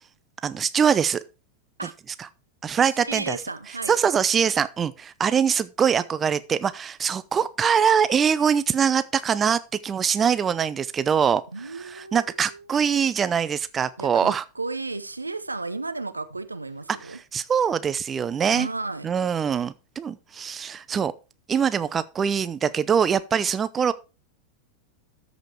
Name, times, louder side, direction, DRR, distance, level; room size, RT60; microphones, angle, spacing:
voice 1, 0.4-1.2 2.2-2.3 2.6-3.4 3.9-14.4 16.9-18.7 19.0-21.1 21.5-23.9, right 7 dB, 20° right, 0.5 m, -23 dB
voice 2, 3.1-4.0 11.5-12.6 14.0-17.2 18.5-19.1, right 3 dB, 80° right, 0.7 m, -33 dB
13.5 x 5.1 x 4.5 m
figure-of-eight pair, 90°, 0 cm